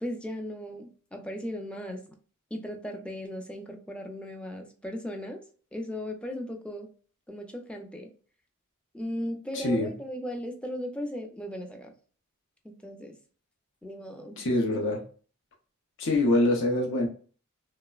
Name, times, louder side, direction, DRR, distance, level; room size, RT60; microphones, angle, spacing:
voice 1, 0.0-2.1 2.5-5.4 5.7-6.9 7.3-8.1 8.9-11.9 12.6-13.2 13.8-14.4, equal, 5° left, 0.4 m, -37 dB
voice 2, 9.5-9.9 14.4-15.0 16.0-17.1, left 1 dB, 60° left, 0.5 m, -25 dB
3.0 x 2.0 x 2.2 m
head